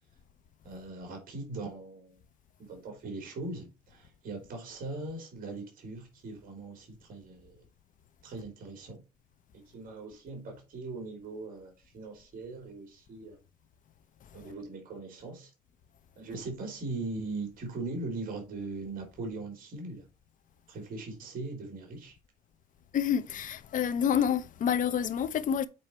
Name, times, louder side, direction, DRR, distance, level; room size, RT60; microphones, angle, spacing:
voice 1, 0.6-2.2 2.6-7.6 8.2-9.0 9.5-13.4 14.3-15.5 16.1-20.1 20.7-22.2, right 3 dB, 55° right, 3.4 m, -40 dB
voice 2, 22.9-25.7, left 8 dB, 50° left, 0.9 m, -28 dB
7.9 x 4.4 x 4.3 m
cardioid pair, 110°, 17 cm